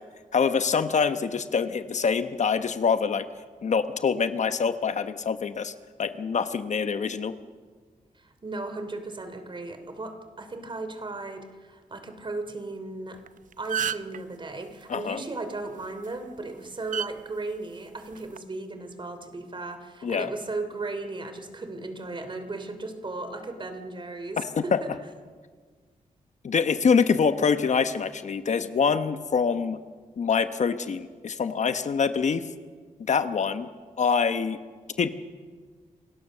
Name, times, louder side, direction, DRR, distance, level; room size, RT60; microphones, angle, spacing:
voice 1, 0.3-3.2 3.6-5.7 6.0-7.3 14.9-15.2 20.0-20.3 24.4-24.8 26.4-29.8 30.2-32.4 33.1-33.7 34.0-34.6 35.0-35.1, left 6 dB, 60° left, 10 dB, 1.1 m, -25 dB
voice 2, 8.1-13.2 13.6-24.9, right 2 dB, 35° right, 8 dB, 3.1 m, -36 dB
sound 1, 13.2-13.3 13.5-14.2 15.8-16.1 16.9-17.1 18.1-18.4, right 9 dB, 70° right, 0.6 m, -29 dB
28.0 x 17.0 x 6.8 m, 1.5 s
cardioid pair, 95°, 14 cm